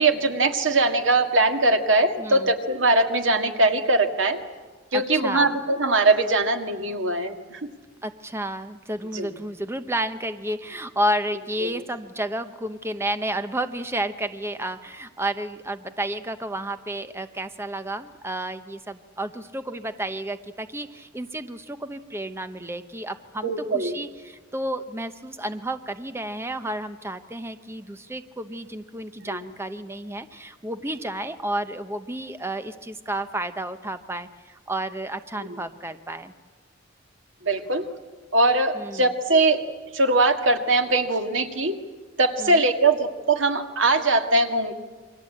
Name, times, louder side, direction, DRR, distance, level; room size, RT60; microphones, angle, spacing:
voice 1, 0.0-4.4 4.9-7.7 9.1-9.3 11.6-11.7 23.4-24.0 29.2-29.4 35.4-35.5 37.4-37.9 38.3-39.6 39.9-41.8 42.2-44.7, right 2 dB, 85° right, 5 dB, 2.0 m, -21 dB
voice 2, 2.2-2.5 4.9-5.6 8.0-36.3 38.7-39.1 42.4-42.6, right 1 dB, 15° right, 9 dB, 0.8 m, -31 dB
28.0 x 24.0 x 8.5 m, 1.4 s
head